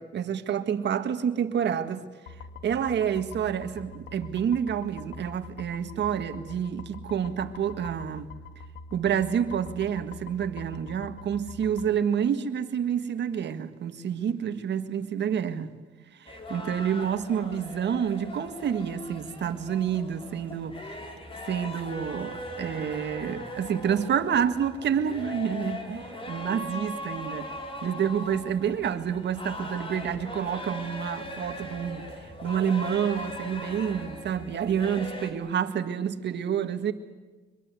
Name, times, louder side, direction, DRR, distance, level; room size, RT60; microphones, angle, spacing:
voice 1, 0.0-2.0 2.6-8.3 8.9-15.7 16.5-20.8 21.5-27.5 27.8-32.0 32.4-36.9, right 8 dB, 60° right, 1.8 m, -28 dB
sound 1, 2.3-11.9, left 3 dB, 80° left, 1.9 m, -44 dB
sound 2, 16.3-35.3, left 1 dB, 25° left, 4.6 m, -39 dB
24.5 x 22.0 x 8.4 m
cardioid pair, 90°, 20 cm